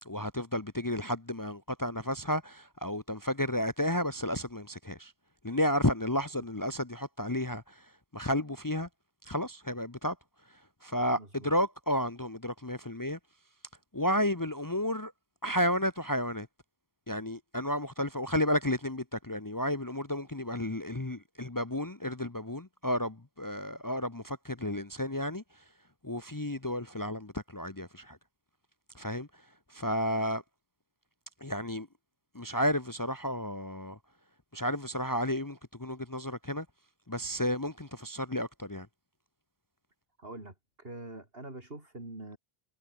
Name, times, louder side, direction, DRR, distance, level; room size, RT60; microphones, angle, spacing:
voice 1, 0.0-5.1 5.4-8.9 9.2-10.2 10.5-13.2 13.9-15.1 15.4-16.5 17.1-25.6 26.0-28.2 28.9-30.4 31.4-31.9 32.3-34.0 34.5-36.7 37.1-38.9, left 1 dB, 20° left, 1.0 m, -32 dB
voice 2, 11.2-11.5 40.2-42.4, right 2 dB, 65° right, 4.9 m, -44 dB
omnidirectional pair, 1.1 m